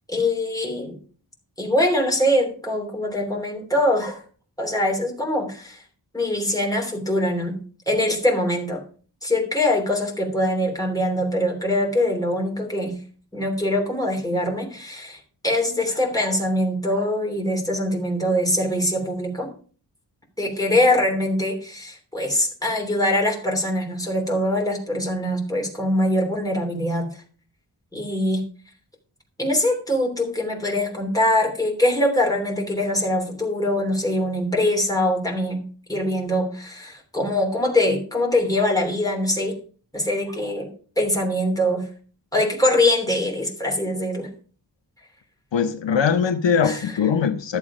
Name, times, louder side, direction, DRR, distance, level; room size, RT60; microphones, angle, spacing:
voice 1, 0.1-1.0 1.6-4.2 4.6-5.8 6.1-8.8 9.2-13.0 13.3-19.5 20.4-27.1 27.9-28.4 29.4-35.6 35.9-39.6 39.9-41.9 42.3-44.3 46.6-46.8, left 1 dB, 10° left, 3.0 m, -23 dB
voice 2, 45.5-47.6, left 7 dB, 80° left, 0.9 m, -21 dB
12.5 x 7.3 x 4.9 m
wide cardioid pair, 115°, 43 cm